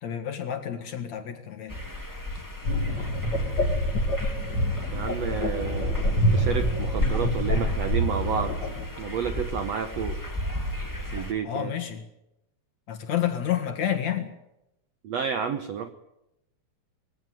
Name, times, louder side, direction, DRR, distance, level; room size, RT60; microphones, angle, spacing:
voice 1, 0.0-1.8 11.4-12.0 12.9-14.3, left 10 dB, 55° left, 6 dB, 2.7 m, -29 dB
sound 1, 1.7-11.3, left 1 dB, 5° left, 2.4 m, -34 dB
sound 2, 2.6-8.9, equal, 35° left, 2.4 m, -26 dB
voice 2, 4.9-8.6 9.0-10.2 11.1-11.7 15.0-15.9, right 7 dB, 70° right, 9 dB, 1.6 m, -30 dB
21.5 x 16.5 x 9.3 m, 0.88 s
omnidirectional pair, 4.4 m